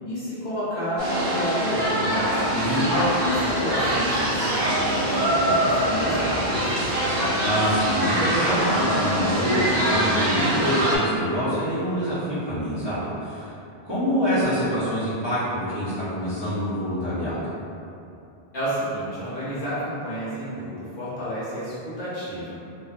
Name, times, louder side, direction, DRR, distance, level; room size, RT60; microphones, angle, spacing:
voice 1, 0.0-2.3 2.9-6.7 18.5-22.5, equal, 60° left, -10 dB, 0.9 m, -30 dB
sound 1, 1.0-11.0, right 1 dB, 70° right, 0.9 m, -24 dB
voice 2, 2.5-2.9 7.4-13.5 13.8-17.4, equal, 30° right, -15 dB, 0.6 m, -25 dB
2.5 x 2.1 x 2.4 m, 2.7 s
omnidirectional pair, 1.0 m